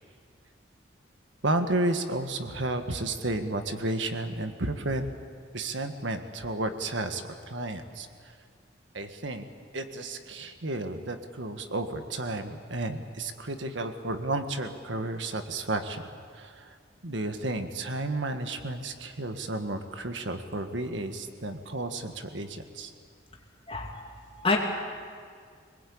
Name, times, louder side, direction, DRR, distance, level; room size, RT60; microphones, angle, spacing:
voice 1, 1.4-5.1 5.5-8.1 8.9-9.5 9.7-16.0 16.4-16.8 17.0-22.9, right 2 dB, 75° right, 7 dB, 1.6 m, -32 dB
voice 2, 23.7-24.1 24.4-24.6, left 3 dB, 30° left, 0 dB, 3.0 m, -27 dB
23.5 x 20.5 x 8.7 m, 2.1 s
head